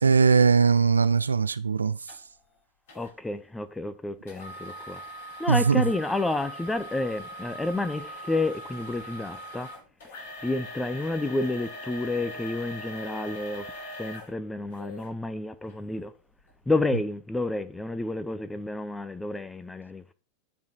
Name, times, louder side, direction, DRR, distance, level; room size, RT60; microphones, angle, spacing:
voice 1, 0.0-2.0 5.5-5.9, right 5 dB, 75° right, 0.4 m, -20 dB
sound 1, 2.1-2.2 2.9-3.1 4.3-15.1 15.7-15.8 16.4-16.5, equal, 55° left, 4.1 m, -41 dB
voice 2, 2.9-5.0 5.4-9.7 10.4-13.6 14.0-16.1 16.7-20.1, left 2 dB, 5° left, 0.7 m, -30 dB
10.5 x 4.1 x 4.5 m
figure-of-eight pair, 90°, 0 cm